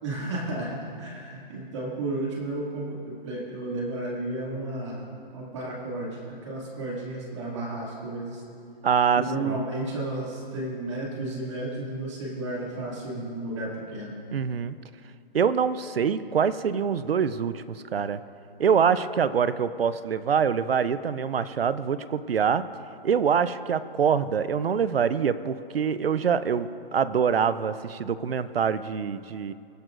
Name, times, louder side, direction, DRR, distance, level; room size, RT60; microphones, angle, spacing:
voice 1, 0.0-5.1 5.3-8.4 9.2-14.1, right 2 dB, 30° right, -4 dB, 2.4 m, -33 dB
voice 2, 8.8-9.6 14.3-14.7 15.3-18.2 18.6-22.6 23.0-29.5, right 7 dB, 80° right, 14 dB, 0.7 m, -25 dB
23.5 x 9.0 x 2.6 m, 2.5 s
hypercardioid pair, 170°, 29 cm